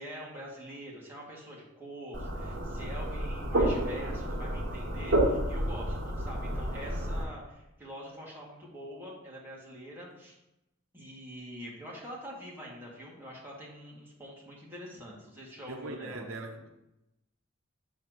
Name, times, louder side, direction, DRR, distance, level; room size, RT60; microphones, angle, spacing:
voice 1, 0.0-10.4 10.9-16.3, equal, 10° right, 2.2 m, -45 dB
sound 1, 2.1-7.2, right 1 dB, 60° right, 2.6 m, -30 dB
voice 2, 15.7-16.7, right 2 dB, 90° right, 0.8 m, -40 dB
6.3 x 4.5 x 6.2 m
head